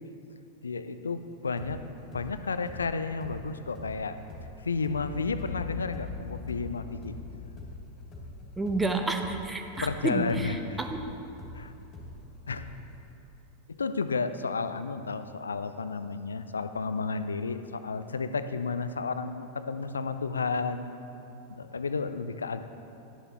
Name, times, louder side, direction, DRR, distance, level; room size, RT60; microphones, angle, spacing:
voice 1, 0.6-1.8 2.1-4.2 4.6-7.1 9.8-10.8 11.5-11.7 12.5-12.7 13.7-20.9 21.5-22.6, left 4 dB, 75° left, 11 dB, 0.4 m, -32 dB
sound 1, 1.6-9.4 9.7-13.0, left 1 dB, 30° left, 2.3 m, -45 dB
Boom, 5.0-9.3, left 6 dB, 60° left, 1.3 m, -41 dB
voice 2, 8.6-11.0, right 2 dB, 10° right, 5 dB, 0.7 m, -30 dB
11.5 x 10.0 x 3.0 m, 2.8 s
figure-of-eight pair, 90°, 0 cm